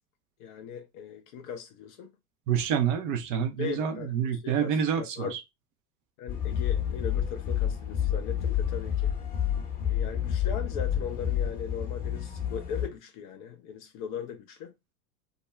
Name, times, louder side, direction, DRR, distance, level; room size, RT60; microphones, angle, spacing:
voice 1, 0.4-2.1 3.6-5.3 6.2-9.1 9.8-14.7, left 7 dB, 35° left, 0.4 m, -39 dB
voice 2, 2.5-5.4, right 8 dB, 35° right, 0.4 m, -28 dB
sound 1, 6.3-12.9, left 9 dB, 20° left, 0.8 m, -29 dB
2.3 x 2.0 x 3.1 m
figure-of-eight pair, 80°, 47 cm